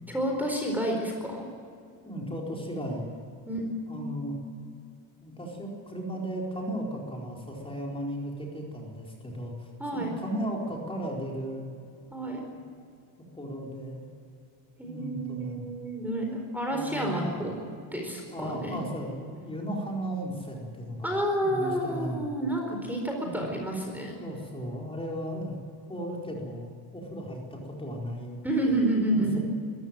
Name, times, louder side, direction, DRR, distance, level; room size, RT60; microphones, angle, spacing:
voice 1, 0.1-1.4 3.5-4.4 9.8-10.2 12.1-12.4 14.8-17.6 17.9-18.8 21.0-24.2 28.4-29.4, right 1 dB, 5° right, 1 dB, 4.3 m, -30 dB
voice 2, 2.0-3.1 3.8-4.3 5.2-11.6 13.3-14.0 14.8-15.7 16.7-17.3 18.3-22.3 23.2-23.4 24.2-25.6 25.9-28.4 29.1-29.4, equal, 10° left, -1 dB, 4.6 m, -36 dB
22.0 x 15.5 x 9.1 m, 2.4 s
cardioid pair, 130°, 45 cm